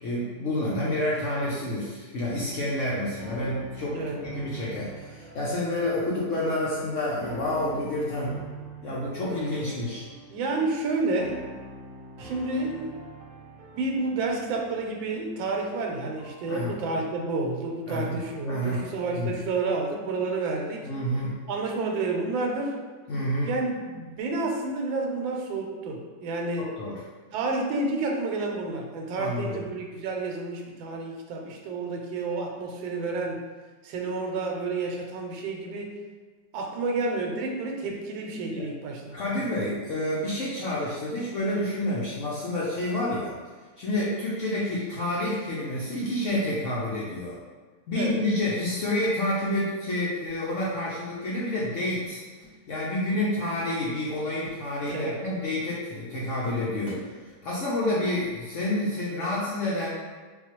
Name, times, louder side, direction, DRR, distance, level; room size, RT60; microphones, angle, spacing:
voice 1, 0.0-8.4 8.8-10.0 16.5-16.7 17.9-18.8 19.1-19.3 20.8-21.4 23.1-23.5 26.6-27.0 29.2-29.6 38.5-38.7 39.1-43.4 43.8-47.4 47.9-52.2 52.7-57.0 57.4-59.9, left 1 dB, 80° left, -7 dB, 0.6 m, -29 dB
sound 1, 2.3-18.6, right 2 dB, 60° right, 1.0 m, -45 dB
voice 2, 10.3-11.4 12.2-13.0 13.7-20.9 21.5-22.8 23.4-26.7 27.3-33.4 33.8-35.9 36.5-39.4 47.9-48.2 54.9-55.2, right 3 dB, 85° right, 1 dB, 1.3 m, -30 dB
sound 2, 51.6-52.6 52.8-53.1 53.6-53.8 54.0-55.5 56.0-56.1 56.4-57.7, right 1 dB, 40° right, 0.4 m, -47 dB
4.0 x 2.3 x 2.9 m, 1.4 s
omnidirectional pair, 2.0 m